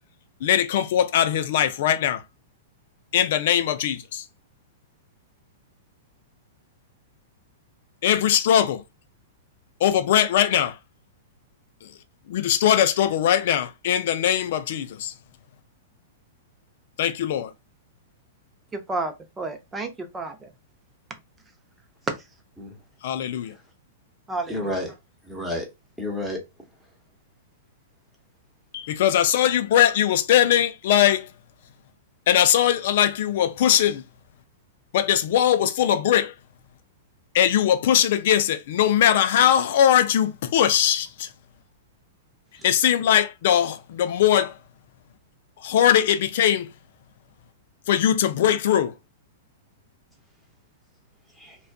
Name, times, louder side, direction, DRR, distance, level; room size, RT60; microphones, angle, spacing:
voice 1, 0.4-2.2 3.1-4.2 8.0-8.8 9.8-10.8 12.3-15.1 17.0-17.5 23.0-23.5 28.7-31.3 32.3-34.0 34.9-36.3 37.3-41.3 42.6-44.5 45.6-46.7 47.9-48.9, left 10 dB, 60° left, 0.4 m, -20 dB
voice 2, 18.7-20.5 22.1-22.2 24.3-24.6, right 3 dB, 15° right, 0.5 m, -30 dB
voice 3, 24.5-25.0 25.2-25.7 26.0-26.4 42.5-42.7 51.4-51.6, left 1 dB, ahead, 1.0 m, -31 dB
2.5 x 2.2 x 2.2 m
hypercardioid pair, 120°, 0 cm